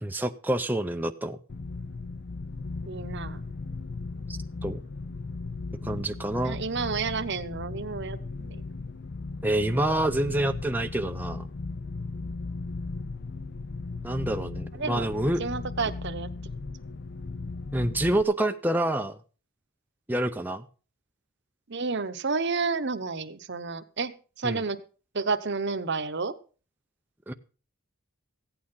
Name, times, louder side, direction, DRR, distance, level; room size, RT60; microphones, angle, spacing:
voice 1, 0.0-1.4 4.3-4.8 5.8-6.6 9.4-11.5 14.0-15.4 17.7-19.2 20.1-20.6 24.4-24.6 27.3-27.4, right 1 dB, 10° right, 6 dB, 0.5 m, -27 dB
sound 1, 1.5-18.2, left 3 dB, 50° left, 0.5 m, -37 dB
voice 2, 2.9-3.4 5.8-6.0 6.4-8.6 14.8-15.1 15.4-16.3 21.7-24.1 24.4-24.8 25.1-26.3, right 4 dB, 50° right, 9 dB, 0.9 m, -30 dB
15.5 x 8.9 x 5.6 m, 0.37 s
head